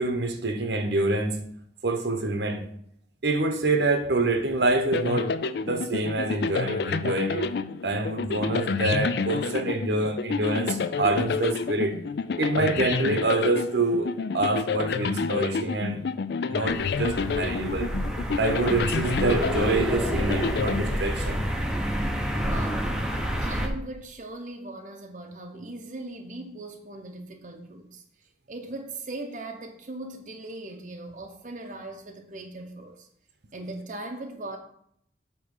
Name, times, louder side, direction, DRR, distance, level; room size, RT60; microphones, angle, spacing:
voice 1, 0.0-1.4 1.8-2.6 3.2-5.3 5.6-7.5 7.8-12.0 12.4-16.0 16.5-17.9 18.4-21.4, right 2 dB, 70° right, 0.9 m, -26 dB
sound 1, 4.9-21.5, left 5 dB, 65° left, 0.4 m, -29 dB
sound 2, 16.7-23.7, equal, 5° right, 0.6 m, -28 dB
voice 2, 22.3-33.1 33.5-34.6, right 2 dB, 45° right, 0.7 m, -39 dB
8.5 x 3.0 x 6.4 m
head